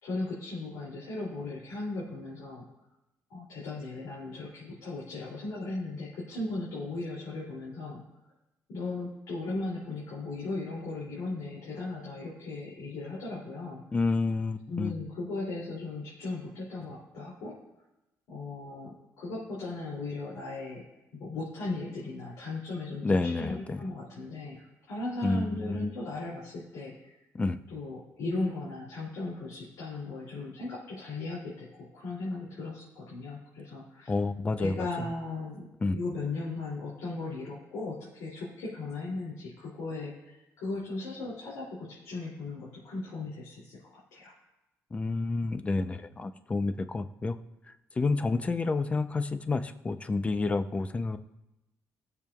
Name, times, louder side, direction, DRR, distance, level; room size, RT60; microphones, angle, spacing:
voice 1, 0.0-2.7 3.3-8.0 8.7-13.8 14.7-17.6 18.3-20.8 21.1-27.2 27.7-34.1 34.6-44.4, left 2 dB, 90° left, -6 dB, 2.8 m, -37 dB
voice 2, 13.9-14.9 23.0-23.8 25.2-25.9 27.3-27.6 34.1-34.7 35.8-36.0 44.9-47.4 48.0-51.2, left 3 dB, 20° left, 10 dB, 0.6 m, -29 dB
19.5 x 7.0 x 2.4 m, 0.95 s
cardioid pair, 115°, 6 cm